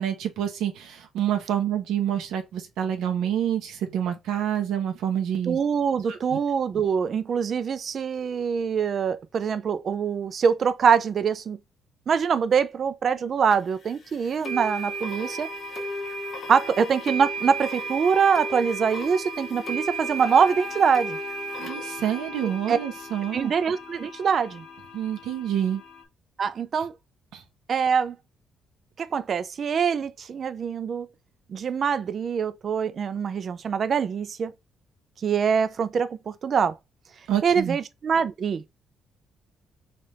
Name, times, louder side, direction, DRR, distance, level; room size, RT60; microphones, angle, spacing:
voice 1, 0.0-5.6 6.1-6.2 21.6-23.5 24.9-25.8 27.3-27.4 37.3-37.8, right 10 dB, 90° right, 0.7 m, -27 dB
voice 2, 5.5-11.6 12.1-15.5 16.5-21.2 22.7-22.8 23.3-24.6 26.4-26.9 27.7-28.2 29.0-31.1 31.5-34.5 35.2-36.8 37.4-38.6, right 6 dB, 45° right, 0.4 m, -24 dB
sound 1, 13.5-13.6 14.4-26.0, right 1 dB, 45° left, 1.0 m, -35 dB
3.3 x 2.4 x 4.1 m
cardioid pair, 135°, 0 cm